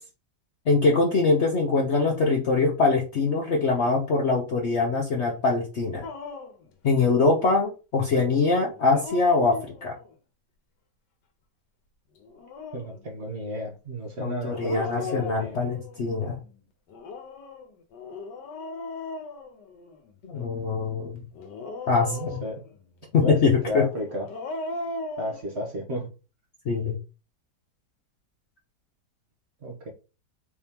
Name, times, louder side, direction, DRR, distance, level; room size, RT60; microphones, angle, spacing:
voice 1, 0.7-6.1 6.8-9.9 14.2-16.4 20.2-21.2 21.9-22.4 23.1-23.9 26.7-27.0, left 3 dB, 55° left, 1 dB, 0.8 m, -23 dB
Dog, 6.0-6.7 8.7-10.1 12.2-13.0 14.5-16.0 16.9-20.1 21.3-22.7 24.1-25.4, left 3 dB, 80° left, 1.5 m, -37 dB
voice 2, 12.7-15.6 22.1-22.6 23.2-24.3 25.2-26.1 29.6-29.9, equal, 45° right, 1 dB, 1.0 m, -33 dB
4.7 x 2.9 x 3.5 m, 0.32 s
omnidirectional pair, 1.8 m